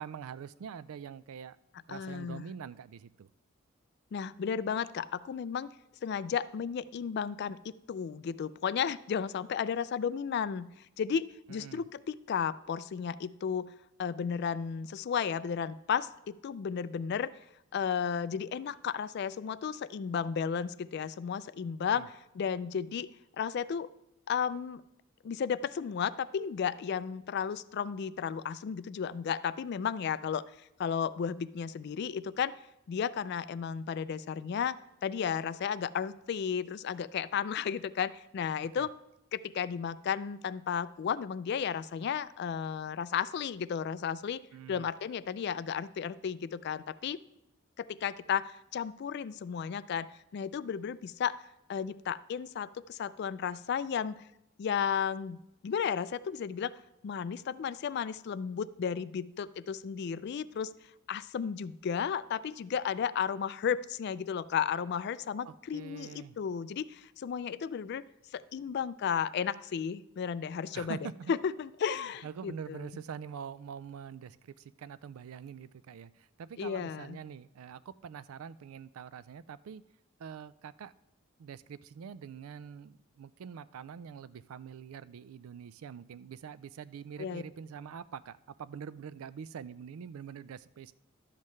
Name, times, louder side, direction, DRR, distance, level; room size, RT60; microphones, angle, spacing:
voice 1, 0.0-1.6 1.9-3.3 11.5-11.8 21.9-22.1 38.8-38.9 44.5-44.9 65.4-66.4 70.7-71.3 72.0-79.8 80.2-80.9 81.4-90.9, right 7 dB, 90° right, 17 dB, 0.4 m, -45 dB
voice 2, 1.9-2.5 4.1-5.7 6.0-10.7 11.0-13.7 14.0-17.3 17.7-23.1 23.4-23.9 24.3-24.8 25.2-30.4 30.8-32.5 32.9-38.9 39.3-44.4 44.7-47.2 47.8-51.4 51.7-54.2 54.6-56.7 57.0-60.7 61.1-68.0 68.3-71.0 71.3-72.9 76.6-77.2 87.2-87.4, left 7 dB, 50° left, 16 dB, 0.3 m, -33 dB
11.5 x 7.4 x 3.2 m, 0.85 s
head